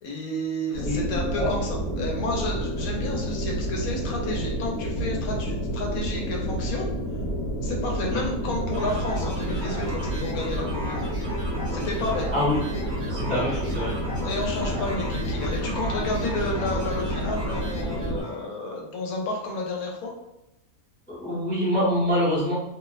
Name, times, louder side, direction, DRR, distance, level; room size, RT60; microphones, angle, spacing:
voice 1, 0.0-6.9 7.6-11.1 11.7-12.3 13.3-13.4 14.2-20.1, left 2 dB, 80° left, 0 dB, 1.0 m, -31 dB
sound 1, 0.7-18.2, equal, 50° left, 1.1 m, -29 dB
voice 2, 0.8-1.5 8.1-8.2 12.3-12.6 13.1-13.9 21.1-22.5, left 1 dB, 10° left, -8 dB, 0.6 m, -25 dB
sound 2, 8.7-18.5, equal, 50° right, 1.0 m, -38 dB
2.7 x 2.0 x 2.3 m, 0.92 s
omnidirectional pair, 1.6 m